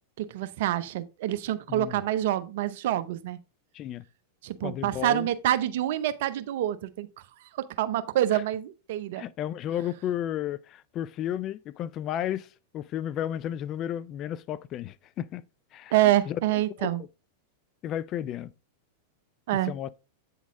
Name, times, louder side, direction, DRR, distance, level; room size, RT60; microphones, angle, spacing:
voice 1, 0.2-3.4 4.4-7.1 7.5-9.2 15.9-17.0 19.5-19.7, right 13 dB, 60° right, 0.6 m, -27 dB
voice 2, 1.7-2.0 3.7-4.0 4.6-5.3 8.3-8.4 9.2-12.5 12.7-15.4 15.7-15.9 16.3-16.9 17.8-18.5 19.7-19.9, left 11 dB, 40° left, 0.4 m, -33 dB
8.4 x 4.1 x 3.6 m
hypercardioid pair, 95°, 0 cm